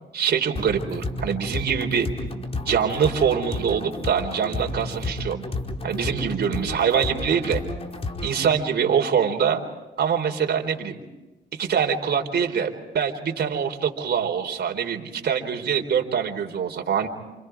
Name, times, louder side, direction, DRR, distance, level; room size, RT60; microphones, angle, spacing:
voice 1, 0.1-2.1 2.6-5.4 5.8-7.6 8.2-9.6 10.0-11.0 11.6-12.7 12.9-17.1, right 7 dB, 55° right, 3 dB, 4.2 m, -24 dB
sound 1, 0.5-8.5, left 2 dB, 30° left, 4.7 m, -32 dB
29.0 x 28.5 x 4.8 m, 1.0 s
cardioid pair, 90°, 20 cm